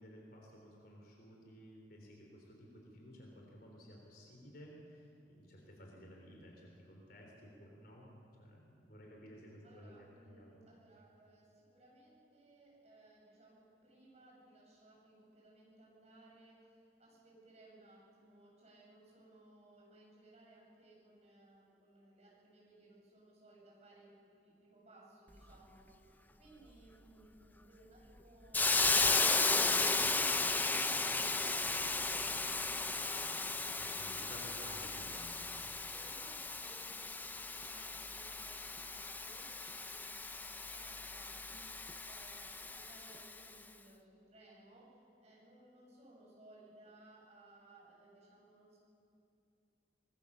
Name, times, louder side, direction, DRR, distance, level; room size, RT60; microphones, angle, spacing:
voice 1, 0.0-10.6 33.5-35.6, equal, 60° left, -1 dB, 3.9 m, -55 dB
voice 2, 9.6-34.0 34.5-34.8 35.9-48.8, right 2 dB, 40° right, -4 dB, 7.7 m, -61 dB
Hiss, 28.5-43.3, left 3 dB, 10° left, 0.6 m, -35 dB
24.0 x 21.0 x 6.9 m, 2.6 s
head